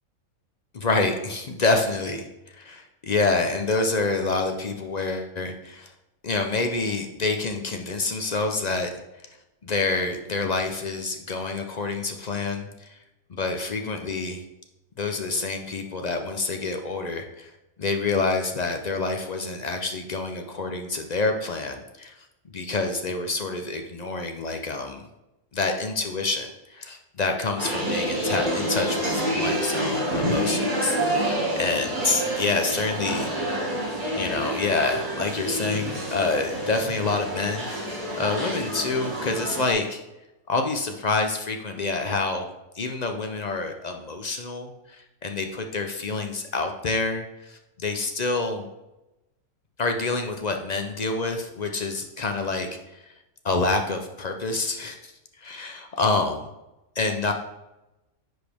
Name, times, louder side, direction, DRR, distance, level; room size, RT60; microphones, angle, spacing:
voice 1, 0.7-2.2 2.5-5.9 6.2-8.9 9.6-13.0 13.3-14.4 15.0-17.5 17.8-22.2 22.5-25.0 25.5-33.3 34.1-37.9 38.2-40.0 40.5-48.7 49.8-53.1 53.4-55.1 55.4-56.5 57.0-57.3, left 3 dB, 50° left, 5 dB, 0.5 m, -27 dB
sound 1, 27.6-39.7, right 1 dB, 35° right, 2.0 m, -28 dB
9.9 x 5.0 x 3.5 m, 0.95 s
omnidirectional pair, 1.5 m